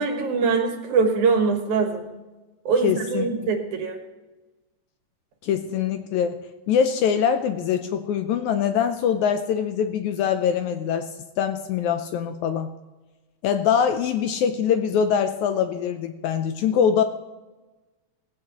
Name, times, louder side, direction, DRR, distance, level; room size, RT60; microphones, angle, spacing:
voice 1, 0.0-2.1 2.7-4.0, right 4 dB, 65° right, 5 dB, 2.6 m, -23 dB
voice 2, 2.8-3.3 5.4-6.4 6.7-11.1 11.4-12.7 13.4-17.0, left 8 dB, 75° left, 8 dB, 1.8 m, -23 dB
17.5 x 16.0 x 3.0 m, 1.2 s
omnidirectional pair, 3.8 m